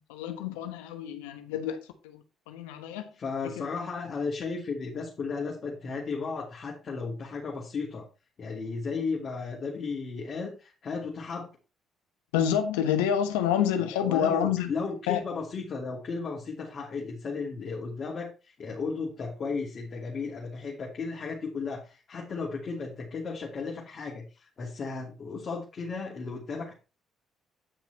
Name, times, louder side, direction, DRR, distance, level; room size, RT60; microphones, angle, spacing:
voice 1, 0.1-1.8 2.1-2.2 2.5-3.1 3.4-3.7 12.3-14.7 15.1-15.2, left 9 dB, 85° left, 1.2 m, -28 dB
voice 2, 3.1-8.1 8.4-11.5 13.9-26.7, left 4 dB, 50° left, 2.8 m, -34 dB
9.6 x 5.9 x 4.2 m
hypercardioid pair, 55°, 0 cm